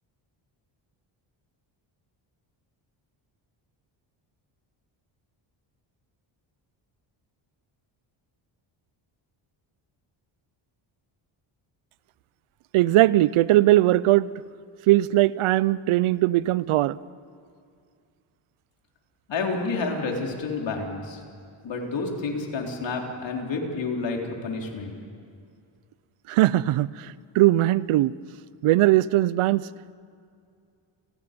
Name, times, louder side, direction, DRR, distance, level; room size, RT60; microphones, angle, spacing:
voice 1, 12.7-14.3 14.9-17.0 26.3-28.1 28.6-29.7, right 16 dB, 85° right, 19 dB, 0.7 m, -20 dB
voice 2, 19.3-21.2 21.6-24.9, left 3 dB, 65° left, 1 dB, 3.8 m, -29 dB
30.0 x 19.0 x 5.2 m, 2.3 s
cardioid pair, 110°, 48 cm